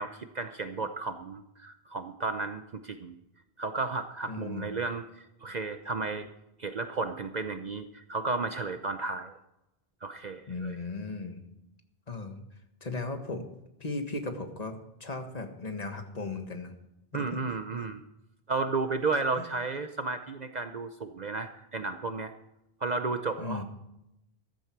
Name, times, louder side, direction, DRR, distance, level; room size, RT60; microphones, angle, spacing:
voice 1, 0.0-3.2 3.6-6.3 6.6-9.3 10.0-10.8 17.1-18.0 18.5-22.3 22.8-23.6, right 3 dB, 50° right, 8 dB, 0.8 m, -33 dB
voice 2, 4.3-4.7 10.5-11.4 12.1-12.4 12.8-13.5 13.8-14.7 15.0-16.7 17.1-17.4 17.8-17.9 19.4-19.5 23.4-23.6, left 3 dB, 40° left, 5 dB, 1.7 m, -36 dB
14.5 x 13.0 x 4.6 m, 0.88 s
omnidirectional pair, 1.0 m